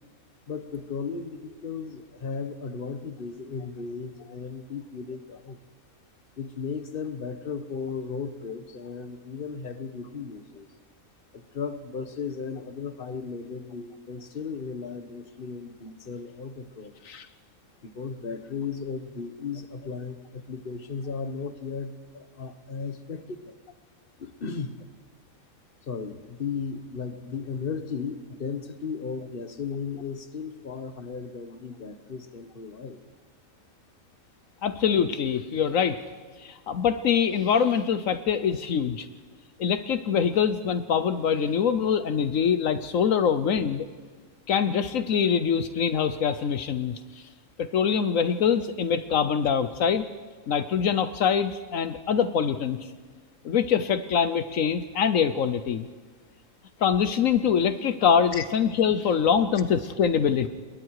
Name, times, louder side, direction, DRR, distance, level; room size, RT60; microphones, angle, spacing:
voice 1, 0.5-5.6 6.4-10.7 11.3-17.0 17.8-23.5 24.2-24.8 25.8-33.0 58.3-58.4, left 5 dB, 45° left, 10 dB, 1.4 m, -35 dB
voice 2, 34.6-36.0 36.4-39.1 39.6-43.9 44.5-47.0 47.6-50.0 50.5-52.9 53.4-55.9 56.8-60.5, left 7 dB, 75° left, 11 dB, 1.2 m, -24 dB
28.5 x 21.5 x 4.8 m, 1.5 s
omnidirectional pair, 1.4 m